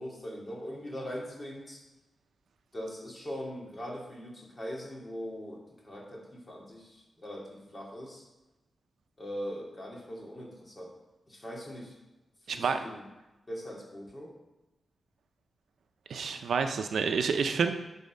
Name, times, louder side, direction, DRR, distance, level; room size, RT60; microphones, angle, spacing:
voice 1, 0.0-1.8 2.7-8.2 9.2-10.9 11.3-12.0 12.5-13.0 13.5-14.3, equal, 30° left, -2 dB, 2.7 m, -41 dB
voice 2, 12.5-12.8 16.1-17.7, right 5 dB, 80° right, 7 dB, 0.6 m, -28 dB
11.0 x 4.2 x 5.4 m, 1.0 s
cardioid pair, 70°, 0 cm